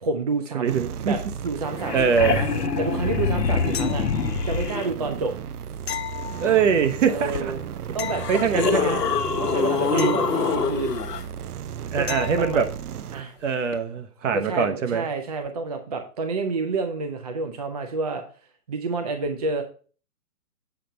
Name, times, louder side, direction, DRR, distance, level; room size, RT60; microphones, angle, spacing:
voice 1, 0.0-2.5 2.8-4.1 4.4-5.3 7.1-7.6 7.9-9.0 9.4-10.9 12.0-12.7 13.1-13.4 14.3-18.2 18.7-19.6, right 3 dB, 25° right, 0.5 m, -29 dB
voice 2, 0.5-1.2 1.9-2.4 6.4-7.5 8.3-9.0 9.9-10.2 11.9-12.7 13.4-15.0, right 6 dB, 50° right, 1.1 m, -23 dB
sound 1, 0.7-13.2, right 9 dB, 75° right, 0.5 m, -35 dB
sound 2, 1.5-1.6 1.7-4.8 7.3-7.4 8.1-11.2 13.7-13.8, left 5 dB, 85° left, 1.1 m, -25 dB
sound 3, 3.7-4.5 5.9-6.9 8.0-9.0 10.0-11.0 12.1-12.7 15.4-15.5, left 11 dB, 45° left, 0.5 m, -36 dB
7.6 x 4.3 x 5.0 m
figure-of-eight pair, 135°, 46 cm